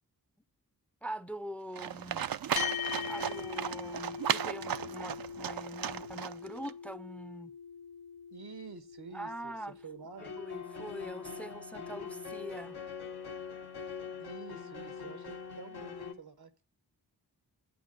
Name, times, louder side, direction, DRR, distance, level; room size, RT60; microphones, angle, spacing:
voice 1, 1.0-2.3 3.1-7.5 9.1-9.8 10.2-12.8, right 1 dB, 5° left, 0.5 m, -43 dB
Livestock farm animals working animals, 1.8-6.7, right 9 dB, 65° right, 0.5 m, -35 dB
sound 1, 2.6-11.2, left 8 dB, 70° left, 0.6 m, -42 dB
voice 2, 8.3-9.5 9.8-10.3 14.2-16.7, right 5 dB, 85° right, 1.2 m, -49 dB
sound 2, 10.2-16.1, left 6 dB, 85° left, 1.5 m, -43 dB
9.4 x 8.5 x 5.3 m
wide cardioid pair, 60°, 38 cm